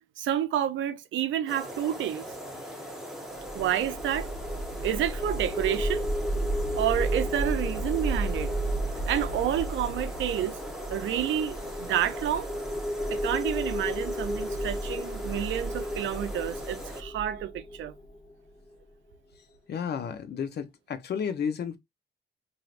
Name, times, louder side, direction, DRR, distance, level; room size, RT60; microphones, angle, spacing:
voice 1, 0.2-2.2 3.5-4.3 4.8-6.0 6.8-8.5 9.1-10.6 10.9-12.5 13.1-17.9, right 11 dB, 75° right, 0.5 m, -29 dB
sound 1, 1.5-17.0, equal, ahead, 1.2 m, -40 dB
sound 2, 3.4-18.5, equal, 25° left, 0.7 m, -32 dB
voice 2, 19.7-21.8, left 7 dB, 55° left, 0.8 m, -32 dB
3.3 x 2.7 x 2.5 m
cardioid pair, 90°, 20 cm